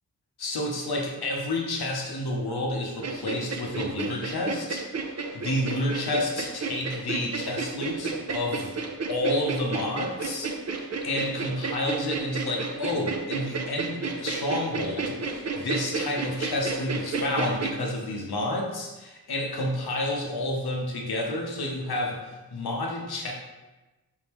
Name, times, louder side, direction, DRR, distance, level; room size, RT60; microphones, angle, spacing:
voice 1, 0.4-4.9 5.3-8.8 9.1-23.3, left 1 dB, 90° left, 0 dB, 0.8 m, -30 dB
sound 1, 3.0-17.7, right 4 dB, 45° right, 0.5 m, -32 dB
4.7 x 3.7 x 3.0 m, 1.1 s
cardioid pair, 45°, 37 cm